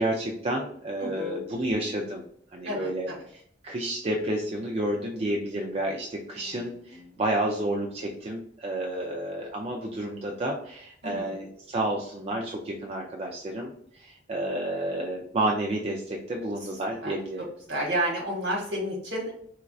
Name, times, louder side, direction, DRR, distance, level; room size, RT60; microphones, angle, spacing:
voice 1, 0.0-2.2 2.5-17.5, right 1 dB, 35° right, 0 dB, 0.4 m, -30 dB
voice 2, 1.0-1.4 2.6-3.2 6.3-6.6 6.9-7.2 11.0-11.4 17.0-17.1 17.7-19.3, right 1 dB, 65° right, -2 dB, 1.4 m, -31 dB
4.3 x 2.4 x 2.3 m, 0.64 s
head